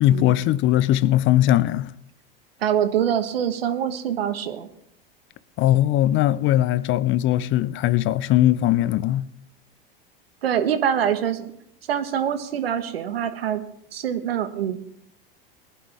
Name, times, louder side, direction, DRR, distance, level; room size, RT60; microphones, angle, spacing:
voice 1, 0.0-1.9 5.6-9.3, left 13 dB, 40° left, 0.7 m, -20 dB
voice 2, 2.6-4.7 10.4-11.5 11.9-13.6 13.9-14.8, right 9 dB, 85° right, 1.5 m, -24 dB
19.0 x 11.0 x 3.6 m
hypercardioid pair, 95°, 29 cm